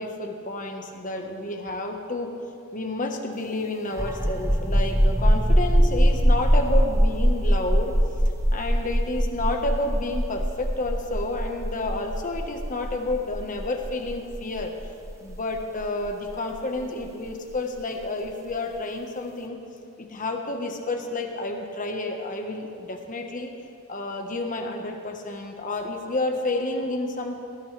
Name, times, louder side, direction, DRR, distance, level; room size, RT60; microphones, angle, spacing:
voice 1, 0.0-2.4 2.7-8.0 8.5-14.7 15.2-19.6 20.0-23.5 23.9-27.3, left 2 dB, 40° left, 4 dB, 1.4 m, -30 dB
sound 1, 3.9-17.3, equal, 15° right, 0.9 m, -22 dB
19.0 x 17.5 x 3.4 m, 2.5 s
head